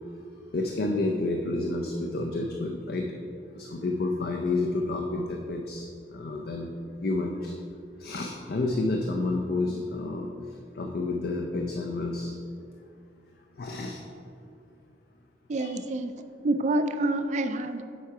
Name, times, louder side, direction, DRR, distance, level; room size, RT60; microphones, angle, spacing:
voice 1, 0.5-3.1 3.5-5.9 6.1-6.7 7.0-7.5 8.0-10.5 10.8-12.3 13.6-14.0 15.5-15.8, left 2 dB, 55° left, 2 dB, 0.5 m, -30 dB
voice 2, 15.5-16.2 16.4-17.8, right 2 dB, 40° right, 8 dB, 0.4 m, -27 dB
7.3 x 4.6 x 4.9 m, 2.6 s
head